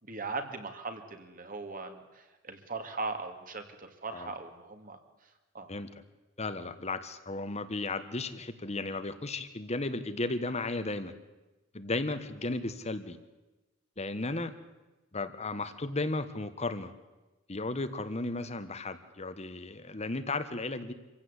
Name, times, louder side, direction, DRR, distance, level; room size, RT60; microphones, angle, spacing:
voice 1, 0.0-5.7, right 3 dB, 45° right, 6 dB, 2.4 m, -40 dB
voice 2, 6.4-11.1 11.7-13.2 14.0-14.5 15.1-16.9 17.5-20.9, left 2 dB, 35° left, 11 dB, 1.4 m, -34 dB
26.0 x 16.0 x 8.3 m, 1.1 s
head